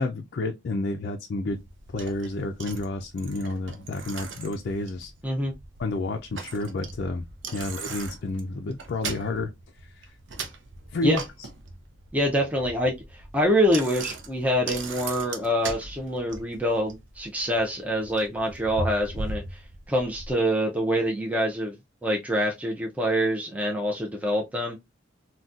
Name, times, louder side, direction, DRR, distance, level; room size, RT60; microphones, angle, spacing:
voice 1, 0.0-1.6 1.9-5.1 5.8-7.2 7.5-9.5 9.8-10.1 10.9-11.2, left 2 dB, 50° left, 0.4 m, -30 dB
Bicycle, 1.5-20.3, right 3 dB, 60° right, 0.6 m, -39 dB
voice 2, 12.1-19.6 19.9-21.7 22.0-24.8, equal, 5° right, 0.5 m, -25 dB
3.9 x 2.2 x 2.4 m
head